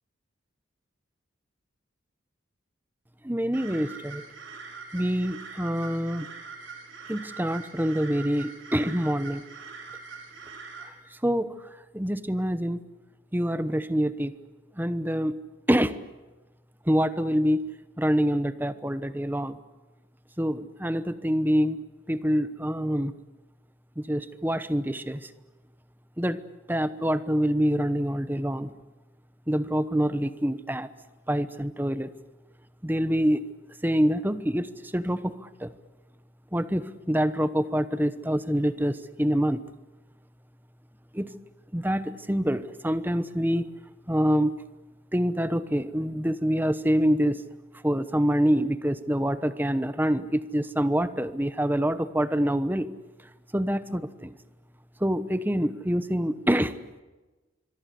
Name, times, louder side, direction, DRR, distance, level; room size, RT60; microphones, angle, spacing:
voice 1, 3.2-4.2 4.9-6.3 7.1-9.4 11.2-11.6 11.9-12.8 13.3-14.3 14.8-15.4 15.7-16.0 16.9-17.6 18.0-19.6 20.4-21.8 22.1-23.1 24.0-25.3 26.2-26.4 26.7-28.7 29.5-30.9 31.3-32.1 32.8-33.5 33.8-35.7 36.5-39.6 41.1-41.4 41.7-43.7 44.1-44.5 45.1-47.4 47.8-52.9 53.5-54.3 55.0-56.8, equal, 10° right, 13 dB, 1.0 m, -26 dB
sound 1, 3.5-10.9, right 5 dB, 70° right, 5.3 m, -43 dB
26.0 x 23.0 x 8.3 m, 1.2 s
head